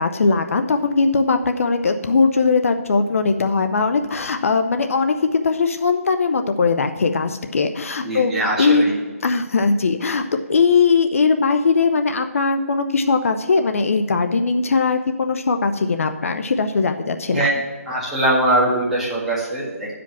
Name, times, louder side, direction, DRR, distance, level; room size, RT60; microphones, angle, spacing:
voice 1, 0.0-8.8 9.2-17.5, left 4 dB, 65° left, 7 dB, 0.7 m, -19 dB
voice 2, 8.0-8.9 17.3-17.5 17.9-19.9, right 1 dB, 5° right, -8 dB, 1.8 m, -21 dB
10.5 x 5.1 x 5.9 m, 1.4 s
hypercardioid pair, 160°, 8 cm